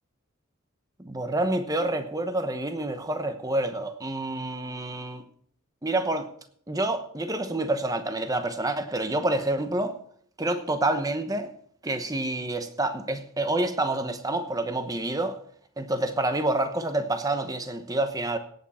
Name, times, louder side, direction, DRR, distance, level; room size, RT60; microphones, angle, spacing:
voice 1, 1.0-5.2 5.8-6.3 6.7-9.9 10.4-11.5 11.8-15.4 15.8-18.4, right 2 dB, 15° right, 1.0 m, -28 dB
17.0 x 8.7 x 4.3 m
head